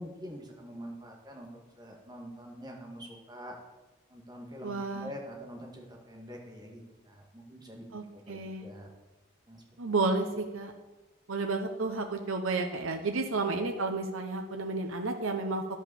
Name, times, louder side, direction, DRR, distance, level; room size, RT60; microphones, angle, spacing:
voice 1, 0.0-1.5 1.8-3.6 4.1-7.8 8.1-8.9 9.5-9.9, equal, 20° right, 0 dB, 2.0 m, -45 dB
voice 2, 4.6-5.1 7.9-8.7 9.8-10.7 11.3-15.6, right 3 dB, 85° right, 4 dB, 0.9 m, -31 dB
11.0 x 5.3 x 7.1 m, 1.1 s
head